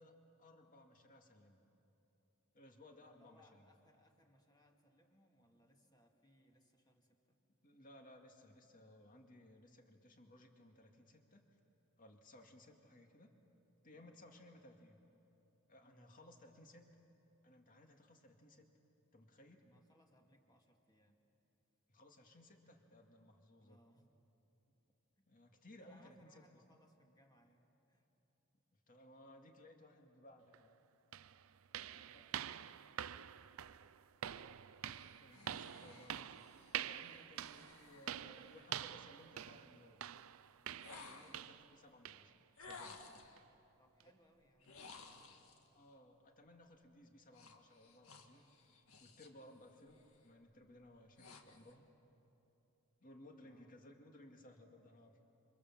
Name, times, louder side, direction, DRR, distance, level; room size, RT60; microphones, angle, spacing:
voice 1, 0.0-1.6 2.5-3.7 7.6-11.6 12.0-13.3 13.8-15.0 15.7-17.0 17.4-18.7 19.1-19.7 21.9-23.8 25.3-26.7 28.7-30.8 35.2-36.4 36.8-40.1 40.9-43.0 45.7-48.5 49.0-51.9 53.0-55.2, left 1 dB, 40° left, 3 dB, 2.2 m, -61 dB
voice 2, 2.9-7.4 13.9-14.6 15.8-16.2 19.6-21.2 23.6-24.1 25.2-25.3 25.8-28.1 31.8-32.8 43.8-45.1 49.7-50.0 53.4-53.8, equal, 20° left, 2 dB, 2.2 m, -71 dB
sound 1, 30.5-30.6 31.1-41.8 42.1-42.3 42.7-42.9 43.4-43.5 44.0-44.1, right 10 dB, 65° right, 0.5 m, -47 dB
sound 2, 34.8-39.0 40.8-41.6 42.6-43.4 44.6-45.7 47.3-49.4 49.8-50.2 50.7-51.8, left 4 dB, 75° left, 1.8 m, -57 dB
28.0 x 26.0 x 7.5 m, 3.0 s
head